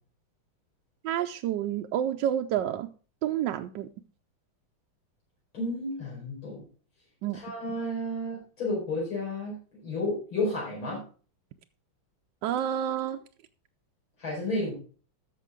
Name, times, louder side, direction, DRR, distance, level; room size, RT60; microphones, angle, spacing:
voice 1, 1.0-2.9 3.2-3.9 7.2-7.4 12.4-13.2, right 10 dB, 75° right, 5 dB, 1.1 m, -29 dB
voice 2, 5.5-6.6 7.3-11.0 14.2-14.7, left 1 dB, 80° left, -5 dB, 5.6 m, -32 dB
13.0 x 6.8 x 3.6 m, 0.39 s
omnidirectional pair, 2.2 m